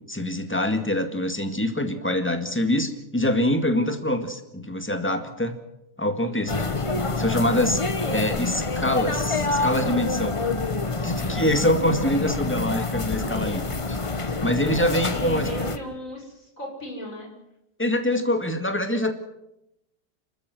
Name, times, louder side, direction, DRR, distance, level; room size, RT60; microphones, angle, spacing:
voice 1, 0.1-5.6 6.0-6.6 7.2-7.8 8.1-10.4 11.0-14.0 14.4-15.5 17.8-19.1, left 1 dB, 5° left, 7 dB, 1.9 m, -25 dB
voice 2, 6.2-6.7 7.2-7.6 11.1-11.7 14.6-17.3, equal, 50° left, 1 dB, 6.5 m, -37 dB
sound 1, 6.5-15.8, left 3 dB, 25° left, 0.8 m, -27 dB
29.5 x 13.5 x 7.8 m, 0.86 s
omnidirectional pair, 1.8 m